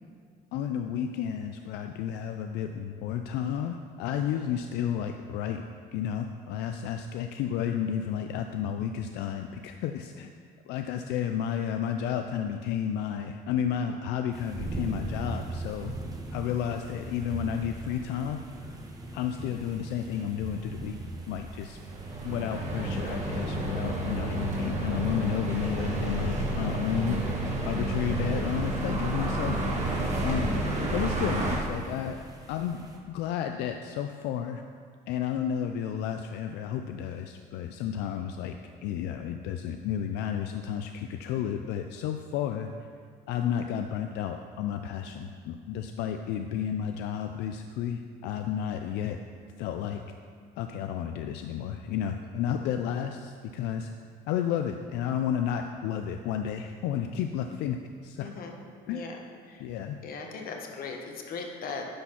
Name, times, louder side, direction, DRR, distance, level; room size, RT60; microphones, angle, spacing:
voice 1, 0.5-5.6 5.9-10.3 10.6-15.9 16.3-18.8 19.1-21.0 21.3-21.8 22.2-27.2 27.6-29.7 30.2-30.6 30.9-32.2 32.5-34.6 35.1-38.6 38.8-42.7 43.3-49.2 49.6-50.0 50.6-53.9 54.3-57.8 58.0-58.3 58.9-59.0 59.6-60.0, left 9 dB, 90° left, 6 dB, 0.4 m, -32 dB
sound 1, 14.3-33.0, right 2 dB, 20° right, 1.1 m, -42 dB
sound 2, 21.8-31.6, right 1 dB, 40° right, 1.7 m, -30 dB
voice 2, 58.2-58.6 58.9-59.7 60.0-61.9, left 4 dB, 60° left, 3 dB, 1.2 m, -39 dB
10.0 x 4.2 x 5.8 m, 2.1 s
cardioid pair, 110°, 17 cm